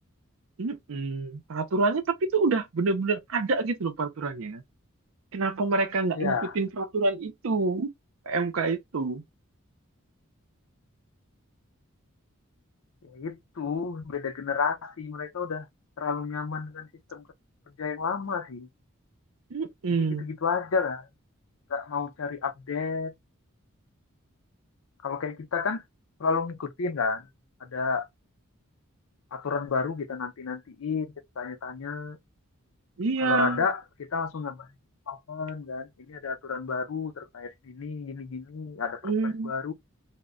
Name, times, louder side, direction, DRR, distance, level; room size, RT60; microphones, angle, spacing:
voice 1, 0.6-4.6 5.3-7.9 8.3-9.2 19.5-20.2 33.0-33.6 39.0-39.5, right 3 dB, 75° right, 0.5 m, -27 dB
voice 2, 6.1-6.6 13.0-15.7 16.0-17.2 17.8-18.7 19.9-21.1 21.7-23.1 25.0-25.8 26.2-27.3 27.6-28.1 29.3-32.2 33.2-34.7 35.1-39.7, left 5 dB, 75° left, 0.5 m, -31 dB
2.1 x 2.1 x 3.5 m
head